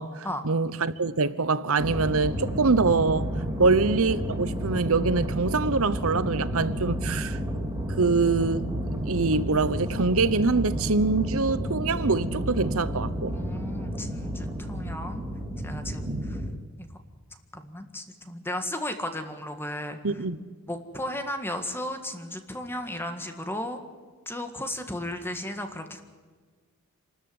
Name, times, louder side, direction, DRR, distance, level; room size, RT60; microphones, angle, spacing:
voice 1, 0.0-3.3 3.6-7.4 8.0-8.7 9.1-13.4 16.1-16.2 20.0-20.4, right 3 dB, 65° right, 1.0 m, -24 dB
sound 1, 1.8-16.5, equal, 15° right, 3.2 m, -31 dB
voice 2, 13.3-15.2 15.6-16.4 16.8-16.9 17.5-20.0 20.7-23.8 24.3-26.0, left 1 dB, 10° left, 1.8 m, -35 dB
28.0 x 13.5 x 9.6 m
head